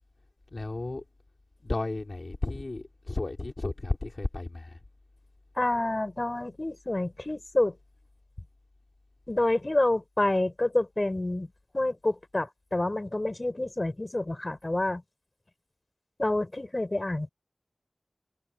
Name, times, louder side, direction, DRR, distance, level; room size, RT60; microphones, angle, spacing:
voice 1, 0.5-1.0 1.6-4.8, left 2 dB, 60° left, 4.0 m, -33 dB
voice 2, 5.6-7.7 9.3-11.5 11.7-15.0 16.2-17.3, left 2 dB, 40° left, 6.1 m, -28 dB
wide cardioid pair, 50°, 0 cm